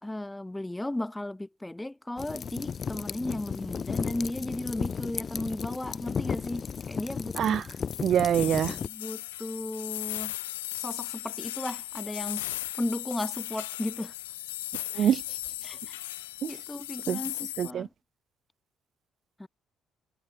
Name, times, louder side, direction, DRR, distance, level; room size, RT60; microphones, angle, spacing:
voice 1, 0.0-7.6 8.8-10.4 10.8-12.5 12.8-14.1 14.9-15.1 15.6-16.0 16.5-17.9 19.4-19.5, left 1 dB, 10° left, 2.2 m, -35 dB
sound 1, 2.2-8.9, left 6 dB, 45° left, 1.5 m, -34 dB
sound 2, 7.9-17.7, left 17 dB, 80° left, 0.9 m, -37 dB
voice 2, 8.0-8.8 14.9-15.4 16.4-16.5 17.1-17.2 17.6-17.9, right 9 dB, 55° right, 0.4 m, -25 dB
hypercardioid pair, 45°, 0 cm